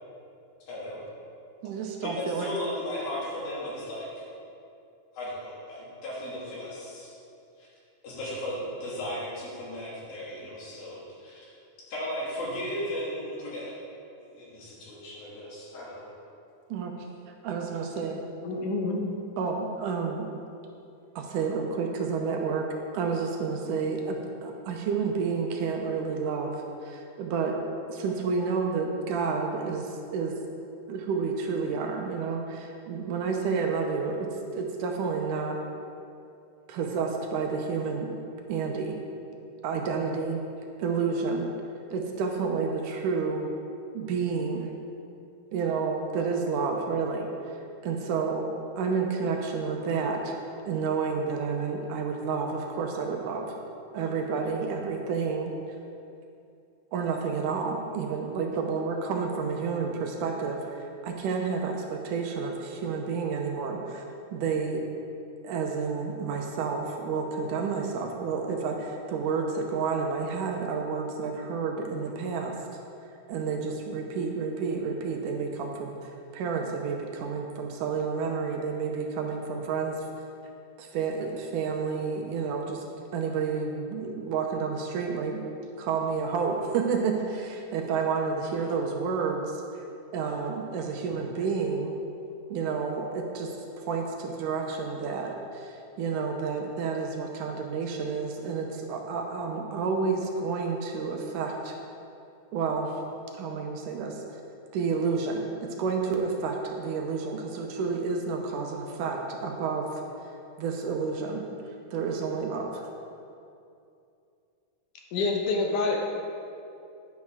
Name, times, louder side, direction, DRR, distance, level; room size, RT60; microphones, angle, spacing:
voice 1, 0.7-1.0 2.0-4.2 5.1-7.1 7.6-7.7 8.0-11.5 11.9-13.8 14.3-16.1, left 1 dB, 85° left, -7 dB, 4.3 m, -36 dB
voice 2, 1.6-2.5 16.7-16.9 17.4-18.2 19.4-20.3 21.2-22.7 22.9-27.6 27.9-30.4 30.9-35.6 36.7-38.1 38.5-39.0 39.6-40.4 40.8-41.5 41.9-43.5 43.9-44.7 45.5-48.5 48.8-50.3 50.6-53.6 53.9-55.5 56.9-64.0 64.3-64.8 65.4-72.5 73.3-80.1 80.8-82.8 83.1-85.4 85.8-89.8 90.1-91.9 92.5-93.5 93.8-101.8 102.5-103.0 103.4-104.2 104.7-105.5 105.8-110.0 110.6-111.5 111.9-112.8, right 5 dB, 75° right, 2 dB, 2.1 m, -30 dB
voice 3, 18.4-19.2 115.1-116.0, left 3 dB, 70° left, 0 dB, 2.5 m, -27 dB
10.5 x 9.7 x 3.6 m, 2.6 s
omnidirectional pair, 4.0 m